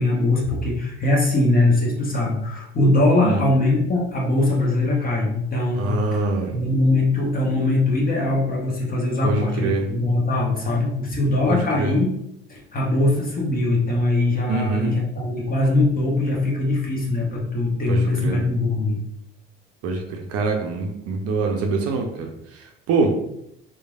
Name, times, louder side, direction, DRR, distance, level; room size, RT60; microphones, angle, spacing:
voice 1, 0.0-6.2 6.5-12.2 12.5-19.0, left 2 dB, 25° left, -2 dB, 0.9 m, -21 dB
voice 2, 5.7-6.6 9.2-9.9 11.5-12.0 14.5-15.0 17.9-18.4 19.8-23.2, right 3 dB, 50° right, 3 dB, 0.5 m, -24 dB
3.1 x 2.3 x 2.3 m, 0.77 s
hypercardioid pair, 60°, 32 cm